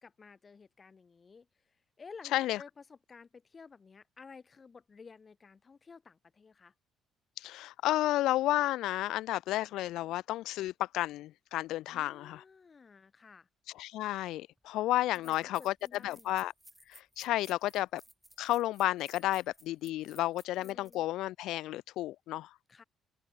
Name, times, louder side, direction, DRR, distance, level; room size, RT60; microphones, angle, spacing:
voice 1, 0.0-6.7 11.9-13.5 15.1-16.3 20.5-21.0 22.7-22.8, left 5 dB, 25° left, 2.2 m, -54 dB
voice 2, 7.4-12.4 13.8-15.7 16.0-16.5 16.9-18.0 18.4-22.5, left 15 dB, 85° left, 0.4 m, -32 dB
sound 1, 14.6-14.7 15.1-21.0, right 1 dB, 5° right, 5.5 m, -58 dB
open air
cardioid pair, 155°, 0 cm